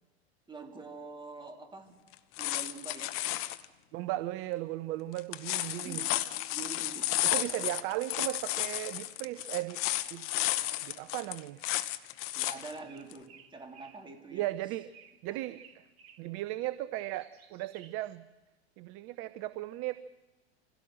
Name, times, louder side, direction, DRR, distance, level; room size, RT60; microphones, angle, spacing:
voice 1, 0.5-1.9 2.4-3.3 5.8-6.2 6.5-7.1 12.3-14.5 15.3-15.4, right 4 dB, 15° right, 4 dB, 2.9 m, -45 dB
sound 1, 2.1-3.7 5.2-12.7 13.1-13.2, left 16 dB, 40° left, 1.0 m, -33 dB
voice 2, 3.9-6.1 7.2-9.8 10.1-10.2 10.8-11.7 14.3-14.9 15.2-15.8 16.2-18.2 18.8-20.0, right 16 dB, 40° right, 15 dB, 0.7 m, -36 dB
sound 2, 12.8-14.1 14.9-15.2 15.5-16.3 16.8-18.2, right 8 dB, 65° right, 2.3 m, -57 dB
25.5 x 16.5 x 6.3 m, 1.1 s
hypercardioid pair, 95°, 33 cm